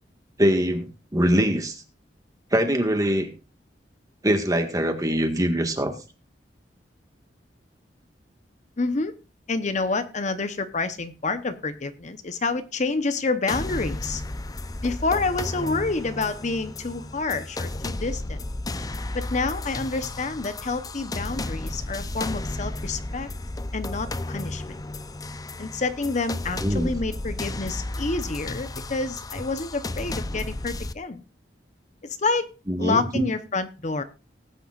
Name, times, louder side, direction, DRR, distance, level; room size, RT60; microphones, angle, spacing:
voice 1, 0.4-1.8 2.5-3.3 4.2-5.9 26.6-26.9 32.7-33.3, equal, 20° right, 6 dB, 1.7 m, -23 dB
voice 2, 8.8-9.1 9.5-14.2 14.8-18.4 19.1-23.3 23.7-24.8 25.6-31.2 32.0-32.5 32.8-34.0, left 3 dB, 45° left, 10 dB, 0.9 m, -28 dB
sound 1, 13.5-30.9, left 2 dB, 20° left, 0.6 m, -33 dB
19.0 x 9.1 x 2.5 m, 0.31 s
head